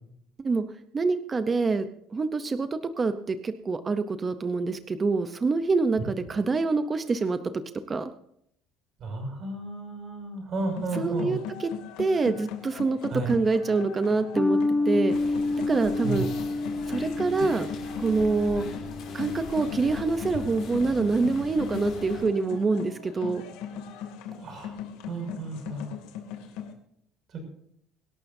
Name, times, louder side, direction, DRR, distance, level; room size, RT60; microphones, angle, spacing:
voice 1, 0.9-7.4 7.9-8.1 10.9-11.7 12.0-14.6 14.9-15.2 15.7-16.3 16.9-17.7 18.0-18.6 19.1-23.4, right 4 dB, 20° right, 10 dB, 0.6 m, -26 dB
voice 2, 9.0-11.4 13.1-13.3 16.0-16.2 24.4-24.7 25.0-25.9, right 2 dB, 35° right, 2 dB, 5.8 m, -33 dB
sound 1, 10.6-26.7, left 9 dB, 85° left, 2.4 m, -39 dB
sound 2, 14.4-21.1, left 2 dB, 5° left, 0.9 m, -30 dB
sound 3, 15.1-22.2, left 4 dB, 45° left, 5.2 m, -41 dB
24.5 x 12.0 x 2.7 m, 0.71 s
cardioid pair, 165°, 0 cm